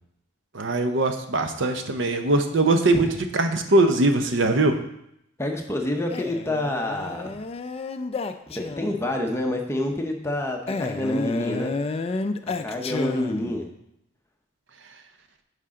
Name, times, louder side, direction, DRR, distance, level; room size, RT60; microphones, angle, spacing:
voice 1, 0.5-3.1 3.3-4.8, right 2 dB, 60° right, 7 dB, 0.7 m, -21 dB
voice 2, 5.4-7.4 8.5-11.7 12.4-13.7, left 1 dB, 15° left, 2 dB, 0.8 m, -28 dB
Male speech man speaking, 6.1-9.1 10.7-13.7, left 3 dB, 30° left, 0.4 m, -31 dB
10.0 x 5.0 x 3.7 m, 0.78 s
head